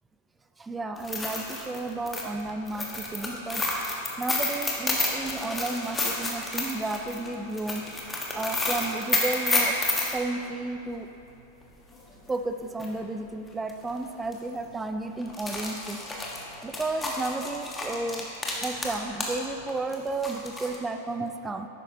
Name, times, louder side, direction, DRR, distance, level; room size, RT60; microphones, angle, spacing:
voice 1, 0.6-3.7 4.2-7.8 8.3-9.8 10.1-11.1 12.3-16.0 16.6-18.3 18.6-21.7, right 2 dB, 10° right, 7 dB, 0.4 m, -32 dB
sound 1, 1.0-10.2 12.3-12.4 12.8-12.9 13.7-13.9 14.2-14.3 15.2-19.4 19.7-20.8, left 2 dB, 15° left, 1.3 m, -30 dB
11.5 x 8.9 x 2.8 m, 3.0 s
figure-of-eight pair, 90°, 0 cm